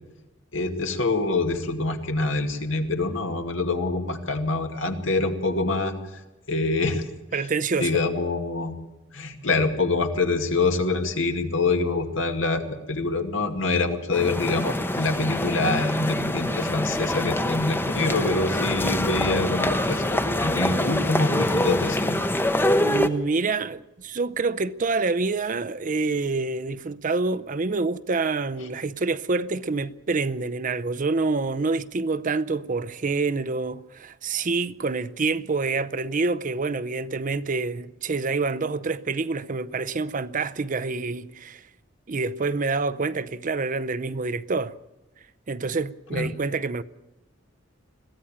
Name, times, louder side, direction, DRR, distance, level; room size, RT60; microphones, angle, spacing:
voice 1, 0.5-5.9 6.5-7.1 7.8-8.7 9.1-22.2 46.1-46.3, left 3 dB, 80° left, 2.2 m, -25 dB
voice 2, 7.3-7.9 22.8-41.6 42.1-44.8 45.5-46.8, right 3 dB, 45° right, 0.6 m, -27 dB
sound 1, 14.1-23.1, left 1 dB, 10° left, 0.8 m, -25 dB
21.5 x 15.0 x 8.7 m
head